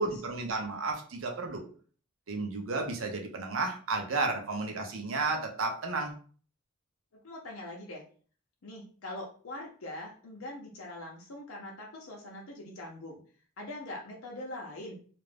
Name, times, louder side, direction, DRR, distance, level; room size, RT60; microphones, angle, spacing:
voice 1, 0.0-1.7 2.3-6.1, right 3 dB, 70° right, 3 dB, 0.6 m, -32 dB
voice 2, 7.2-8.0 8.6-13.2 13.6-14.9, left 1 dB, 85° left, -1 dB, 0.6 m, -42 dB
2.4 x 2.1 x 3.3 m, 0.43 s
head